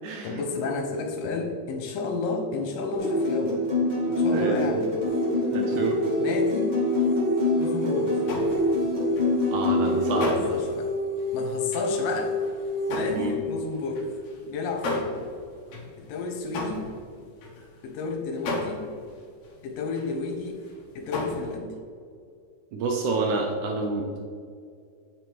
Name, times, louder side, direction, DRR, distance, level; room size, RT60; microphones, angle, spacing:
voice 1, 0.0-3.6 4.1-4.9 6.2-6.8 7.5-8.2 10.2-10.9 11.3-12.3 12.9-14.1 14.5-15.1 16.0-16.9 17.8-18.9 19.6-20.6 21.0-21.8, left 3 dB, 75° left, 3 dB, 2.6 m, -31 dB
sound 1, 2.9-10.3, left 1 dB, 50° right, 0.5 m, -25 dB
sound 2, 5.0-13.2, left 2 dB, 35° left, 2.1 m, -30 dB
voice 2, 5.5-6.0 9.5-10.5 13.1-13.4 22.7-24.0, right 3 dB, 70° right, 2 dB, 2.0 m, -28 dB
sound 3, 8.2-18.0 18.4-20.4 20.6-21.6, left 2 dB, 60° left, 1.8 m, -35 dB
8.8 x 6.4 x 4.5 m, 2.3 s
omnidirectional pair, 4.0 m